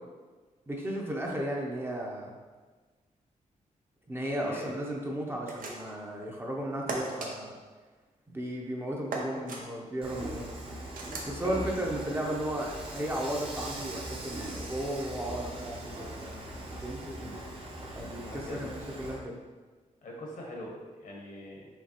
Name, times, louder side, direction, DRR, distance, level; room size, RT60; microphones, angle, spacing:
voice 1, 0.7-2.3 4.1-7.5 8.3-10.5 11.2-17.3 17.9-19.4, right 1 dB, 15° right, -2 dB, 0.6 m, -35 dB
sound 1, 5.4-6.0 6.9-7.3 9.1-9.6 10.9-11.3, right 3 dB, 85° right, 0.7 m, -36 dB
voice 2, 9.1-9.6 17.2-17.4 18.2-18.7 20.0-21.7, left 1 dB, 75° left, -2 dB, 1.1 m, -43 dB
Dishes pots and pans / Frying (food), 10.0-19.2, right 1 dB, 40° right, 0.8 m, -40 dB
5.1 x 3.3 x 2.9 m, 1.4 s
wide cardioid pair, 125°, 14 cm